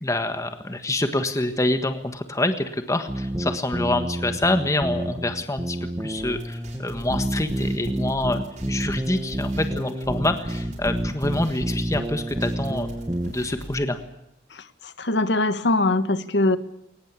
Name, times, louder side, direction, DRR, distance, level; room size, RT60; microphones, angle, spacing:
voice 1, 0.0-8.4 8.7-12.9 13.3-14.0, left 2 dB, 20° left, 8 dB, 1.5 m, -26 dB
sound 1, 3.1-13.3, right 1 dB, 20° right, 1.5 m, -29 dB
sound 2, 6.2-13.8, right 1 dB, 45° right, 7.2 m, -43 dB
voice 2, 14.5-16.6, left 2 dB, 75° left, 12 dB, 1.5 m, -22 dB
22.0 x 20.0 x 8.4 m, 0.84 s
head